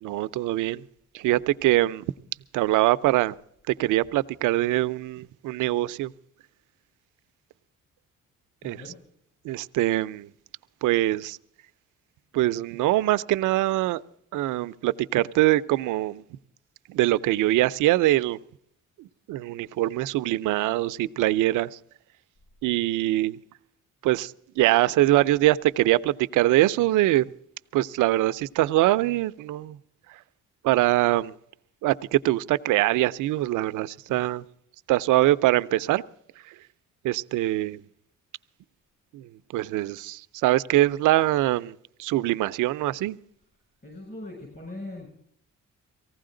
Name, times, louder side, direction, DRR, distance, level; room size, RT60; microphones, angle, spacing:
voice 1, 0.0-0.8 1.1-2.1 2.5-3.4 3.7-6.1 8.6-8.8 9.4-10.3 10.8-11.4 12.3-14.0 14.3-16.2 16.9-18.4 19.0-21.8 22.6-23.4 24.0-27.3 27.7-29.8 30.6-31.3 31.8-34.4 34.9-36.0 36.5-36.6 37.0-37.8 39.1-43.2, right 16 dB, 85° right, 0.6 m, -23 dB
voice 2, 8.6-9.0 34.1-34.3 43.8-45.1, left 2 dB, 35° left, 6.9 m, -40 dB
18.5 x 16.0 x 3.8 m
cardioid pair, 90°, 30 cm